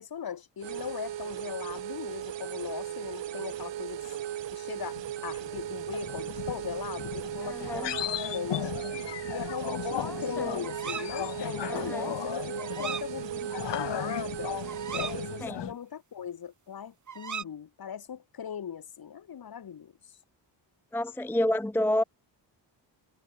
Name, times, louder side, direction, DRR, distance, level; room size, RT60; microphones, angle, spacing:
voice 1, 0.0-4.0 4.5-8.9 9.3-14.6 14.9-20.2, left 8 dB, 55° left, 5.6 m, -39 dB
sound 1, 0.6-15.5, right 12 dB, 80° right, 1.9 m, -37 dB
sound 2, 4.9-15.7, left 12 dB, 70° left, 1.3 m, -37 dB
voice 2, 7.4-8.0 10.0-10.6 11.7-12.1 15.4-15.7 20.9-22.0, left 1 dB, 5° left, 0.5 m, -30 dB
sound 3, 9.6-10.2 10.6-11.1 12.6-13.1 13.5-13.6 13.9-15.2 17.1-17.4, right 7 dB, 40° right, 2.8 m, -39 dB
wide cardioid pair, 160°, 44 cm